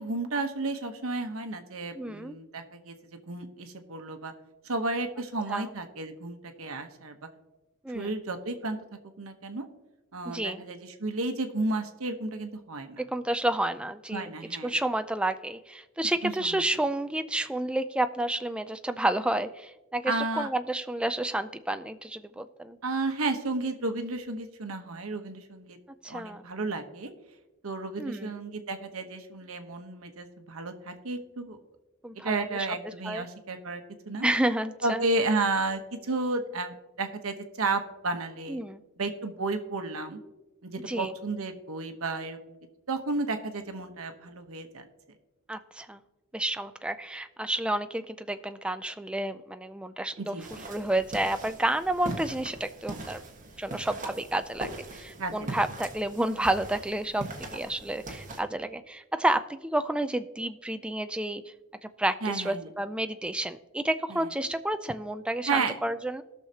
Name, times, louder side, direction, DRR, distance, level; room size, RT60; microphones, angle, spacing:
voice 1, 0.0-2.9 3.3-4.3 4.6-7.2 7.9-8.8 9.2-9.7 10.1-13.0 14.1-14.7 16.2-16.7 20.1-20.5 22.8-25.8 26.1-27.1 27.6-31.6 32.2-34.2 34.8-38.6 39.0-40.2 40.6-42.4 42.9-44.9 50.2-50.6 55.2-55.6 62.2-62.7 64.1-64.3 65.5-65.8, right 3 dB, 80° right, 6 dB, 1.0 m, -32 dB
voice 2, 2.0-2.4 5.5-5.7 7.8-8.2 10.3-10.6 13.0-14.3 14.6-22.8 26.0-26.4 28.0-28.3 32.0-32.5 32.8-33.3 34.2-35.0 38.5-38.8 40.9-41.1 45.5-46.0 46.3-50.4 50.7-53.2 53.6-61.4 61.8-66.2, right 1 dB, 5° right, 9 dB, 0.3 m, -30 dB
sound 1, 50.4-58.4, right 2 dB, 40° right, 1.4 m, -41 dB
18.5 x 6.4 x 2.8 m, 1.1 s
head